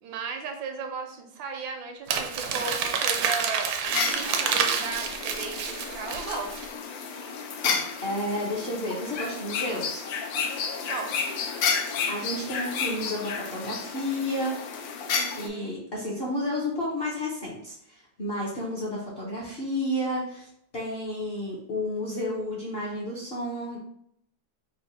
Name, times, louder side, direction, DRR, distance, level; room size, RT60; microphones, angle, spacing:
voice 1, 0.0-3.7 4.0-6.6 10.8-11.2 15.2-15.7, right 4 dB, 90° right, 4 dB, 1.4 m, -36 dB
Crumpling crinkling, 2.1-6.7, right 6 dB, 75° right, 0.9 m, -28 dB
sound 1, 3.8-15.5, left 6 dB, 85° left, 1.3 m, -31 dB
voice 2, 7.6-10.1 12.1-14.6 15.3-20.5 20.7-23.8, left 1 dB, 55° left, -5 dB, 0.7 m, -31 dB
4.0 x 2.2 x 4.0 m, 0.71 s
omnidirectional pair, 2.0 m